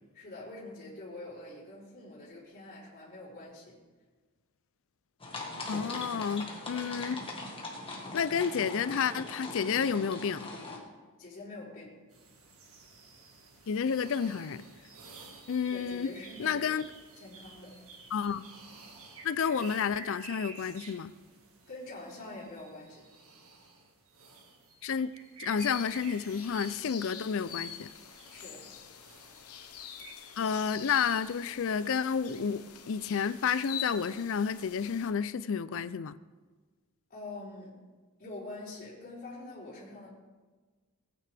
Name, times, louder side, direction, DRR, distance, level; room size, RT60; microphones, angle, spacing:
voice 1, 0.1-3.8 11.2-12.0 15.7-16.7 17.2-17.8 21.7-23.1 28.3-28.7 37.1-37.7 38.2-40.1, left 2 dB, 40° left, -8 dB, 3.9 m, -45 dB
sound 1, 5.2-10.8, left 2 dB, 25° left, 1.7 m, -41 dB
voice 2, 5.7-7.2 8.1-10.5 13.7-14.7 15.5-16.1 16.4-16.8 18.1-18.4 19.2-21.1 24.8-25.1 25.4-27.9 30.4-36.2, left 6 dB, 60° left, 16 dB, 0.4 m, -30 dB
sound 2, 12.1-30.1, right 3 dB, 70° right, 1.8 m, -51 dB
sound 3, 25.6-35.1, left 9 dB, 80° left, 0.9 m, -45 dB
17.5 x 9.4 x 3.4 m, 1.3 s
head